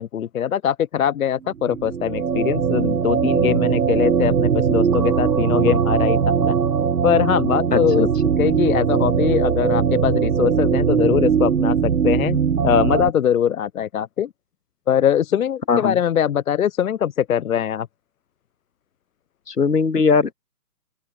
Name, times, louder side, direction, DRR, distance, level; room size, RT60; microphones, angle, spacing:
voice 1, 0.0-6.6 7.0-8.1 8.4-12.4 12.6-14.3 14.9-17.9, left 9 dB, 65° left, 0.5 m, -22 dB
sound 1, 1.5-13.1, right 7 dB, 85° right, 1.0 m, -20 dB
voice 2, 7.7-8.1 15.7-16.0 19.5-20.3, left 5 dB, 80° left, 1.6 m, -19 dB
open air
figure-of-eight pair, 140°, 47 cm